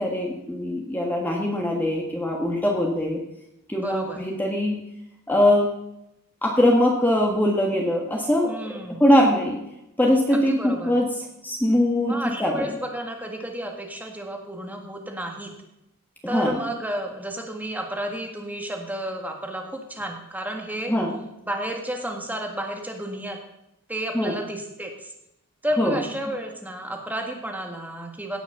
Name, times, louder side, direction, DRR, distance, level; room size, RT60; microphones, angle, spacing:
voice 1, 0.0-3.2 3.7-4.8 5.3-5.7 6.4-8.5 9.0-9.6 10.0-11.1 11.4-12.1 12.4-12.7 16.2-16.6 20.9-21.2 24.1-24.4 25.8-26.0, left 1 dB, 10° left, -1 dB, 1.5 m, -21 dB
voice 2, 3.7-4.3 8.5-9.1 10.3-10.9 12.0-15.5 16.3-20.9 21.5-23.4 23.9-25.1 25.6-28.4, right 1 dB, 10° right, 2 dB, 1.8 m, -32 dB
17.0 x 6.4 x 6.6 m, 0.85 s
head